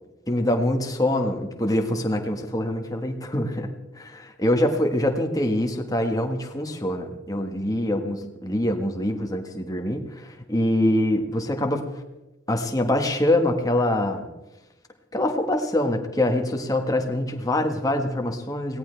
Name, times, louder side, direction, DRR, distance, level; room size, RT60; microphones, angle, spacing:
voice 1, 0.3-3.7 3.9-11.9 12.5-14.3 15.1-18.8, left 1 dB, 20° left, 4 dB, 1.5 m, -24 dB
23.0 x 17.0 x 3.4 m, 1.0 s
head